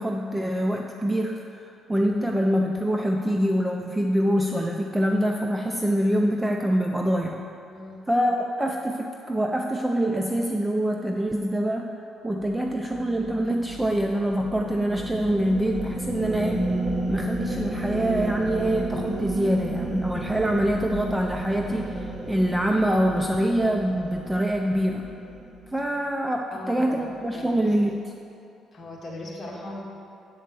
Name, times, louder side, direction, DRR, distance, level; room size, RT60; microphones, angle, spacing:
voice 1, 0.0-7.5 8.1-11.9 12.2-16.7 17.1-25.1 25.7-28.1, equal, 5° right, 1 dB, 0.3 m, -25 dB
voice 2, 7.7-8.0 26.5-27.0 27.3-27.7 28.7-29.8, left 1 dB, 30° left, -4 dB, 1.7 m, -38 dB
sound 1, 12.4-26.0, right 1 dB, 30° right, 1.0 m, -32 dB
7.7 x 4.4 x 6.7 m, 2.6 s
cardioid pair, 150°, 0 cm